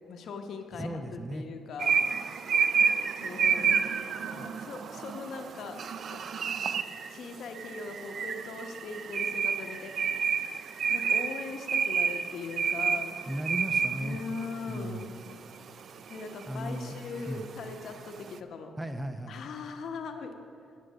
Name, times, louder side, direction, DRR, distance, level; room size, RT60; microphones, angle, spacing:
voice 1, 0.1-2.0 3.2-5.8 6.1-6.4 6.8-10.3 10.9-13.2 14.0-15.1 16.1-18.7 19.3-20.3, left 4 dB, 65° left, 5 dB, 0.9 m, -40 dB
voice 2, 0.7-1.5 13.3-14.2 14.7-15.1 16.5-16.9 17.3-17.5 18.8-19.4, right 1 dB, 15° right, 8 dB, 0.6 m, -36 dB
sound 1, 1.8-18.4, right 6 dB, 55° right, 0.4 m, -30 dB
10.5 x 6.4 x 6.2 m, 2.4 s
cardioid pair, 90°, 0 cm